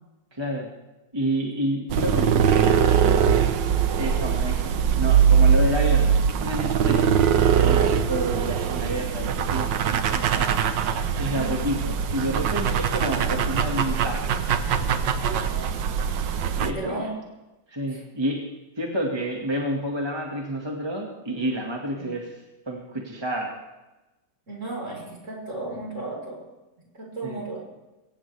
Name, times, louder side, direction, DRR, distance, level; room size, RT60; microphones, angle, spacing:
voice 1, 0.3-0.7 1.1-3.2 4.0-7.1 7.5-10.5 11.2-14.3 16.6-17.2 17.7-18.5 18.8-23.5 27.2-27.4, right 1 dB, 15° right, -1 dB, 1.7 m, -29 dB
sound 1, 1.9-16.7, right 7 dB, 75° right, 1.6 m, -22 dB
voice 2, 16.6-17.2 17.9-18.0 22.0-22.1 24.5-26.5 27.0-27.7, right 2 dB, 40° right, -2 dB, 4.9 m, -34 dB
22.5 x 17.5 x 3.4 m, 1.1 s
omnidirectional pair, 2.0 m